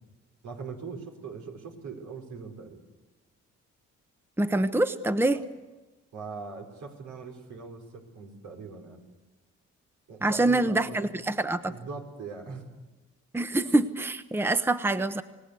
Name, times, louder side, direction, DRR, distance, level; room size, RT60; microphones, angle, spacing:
voice 1, 0.4-2.8 5.3-5.4 6.1-9.0 10.1-11.1 11.6-12.6 13.6-13.7, right 4 dB, 80° right, 2 dB, 4.7 m, -41 dB
voice 2, 4.4-5.4 10.2-11.7 13.3-15.2, right 2 dB, 5° right, 11 dB, 1.0 m, -25 dB
27.5 x 18.5 x 8.2 m, 1.1 s
cardioid pair, 90°, 30 cm